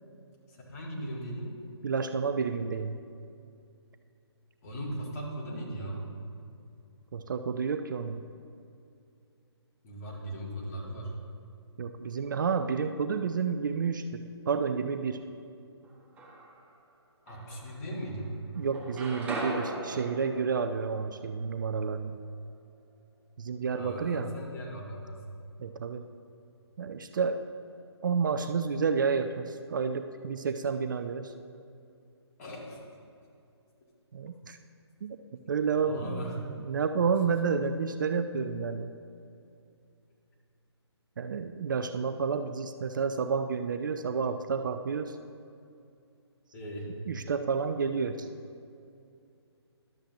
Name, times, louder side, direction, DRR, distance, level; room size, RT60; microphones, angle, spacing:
voice 1, 0.5-1.5 4.6-6.0 9.8-11.1 17.3-18.3 23.7-25.2 32.4-32.8 35.7-36.3 46.5-46.9, right 1 dB, 35° left, -3 dB, 1.8 m, -38 dB
voice 2, 1.8-3.0 7.1-8.2 11.8-15.2 18.6-22.2 23.4-24.3 25.6-26.0 26.8-27.4 28.0-31.3 34.1-34.6 35.0-35.2 35.5-38.9 41.2-45.2 47.1-48.3, right 5 dB, 45° right, 8 dB, 0.4 m, -30 dB
sound 1, 15.8-16.7 17.3-18.3 18.5-22.5, right 1 dB, 10° right, 0.9 m, -40 dB
11.5 x 7.2 x 2.9 m, 2.5 s
figure-of-eight pair, 150°, 14 cm